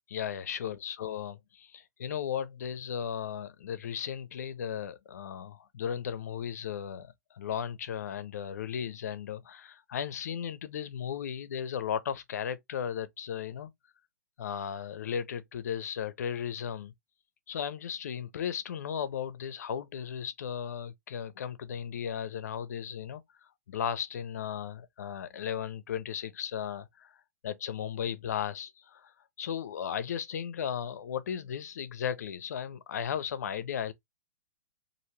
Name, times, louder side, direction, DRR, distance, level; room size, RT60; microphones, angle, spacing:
voice 1, 0.1-13.7 14.4-16.9 17.5-23.2 23.7-27.1 27.4-33.9, left 8 dB, 65° left, 0.7 m, -36 dB
3.4 x 2.6 x 2.8 m
hypercardioid pair, 170°, 9 cm